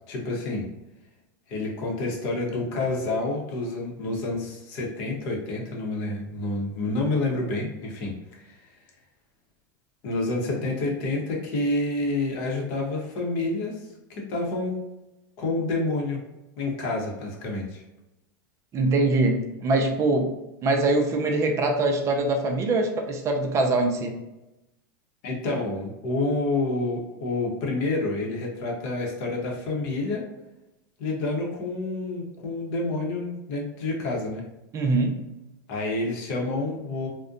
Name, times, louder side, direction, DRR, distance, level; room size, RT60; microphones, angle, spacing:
voice 1, 0.1-0.6 1.5-8.6 10.0-13.8 14.1-14.7 15.4-16.2 16.6-17.8 25.2-30.3 31.0-34.4 35.7-37.1, left 2 dB, 50° left, 0 dB, 0.8 m, -28 dB
voice 2, 18.7-20.3 20.6-24.2 34.7-35.2, right 2 dB, 25° right, 3 dB, 0.4 m, -23 dB
2.5 x 2.1 x 2.5 m, 0.95 s
supercardioid pair, 135°, 11 cm